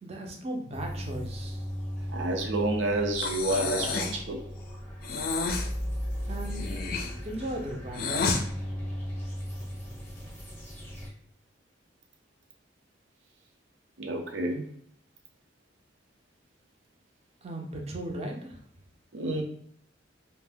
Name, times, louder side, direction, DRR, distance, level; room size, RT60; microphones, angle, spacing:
voice 1, 0.0-1.7 6.2-6.9 7.2-8.2 17.4-18.6, right 1 dB, 35° right, 1 dB, 0.5 m, -37 dB
sound 1, 0.7-11.1, equal, 10° left, 0.7 m, -37 dB
voice 2, 2.1-4.4 14.0-14.6 19.1-19.4, right 2 dB, 75° right, 3 dB, 0.6 m, -29 dB
Breathing, 3.2-4.2 5.0-5.7 6.5-8.4, left 4 dB, 55° left, 0.4 m, -30 dB
2.6 x 2.0 x 3.4 m, 0.65 s
head